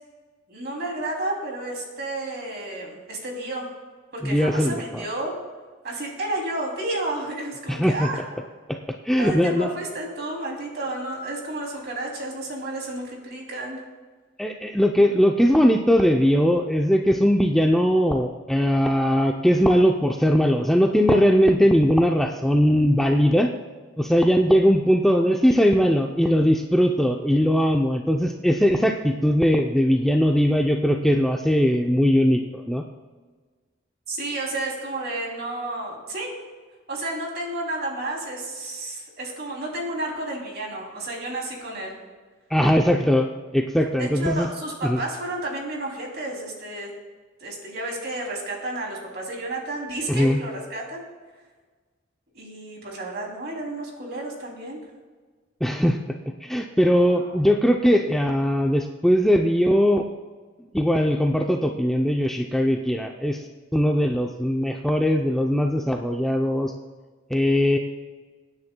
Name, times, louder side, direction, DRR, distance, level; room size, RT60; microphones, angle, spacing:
voice 1, 0.5-3.7 4.1-5.3 5.8-8.2 9.2-13.8 34.1-36.3 36.9-41.9 44.0-46.9 47.4-51.0 52.3-54.8 57.2-57.4, right 2 dB, 55° right, -1 dB, 2.9 m, -31 dB
voice 2, 4.2-5.0 7.7-8.1 8.7-8.8 9.0-9.7 14.4-23.5 24.0-32.8 42.5-44.5 44.8-45.0 50.1-50.4 55.6-56.0 56.4-60.1 60.7-63.4 63.7-66.7 67.3-67.8, equal, ahead, 2 dB, 0.5 m, -20 dB
24.5 x 9.6 x 2.2 m, 1.4 s
head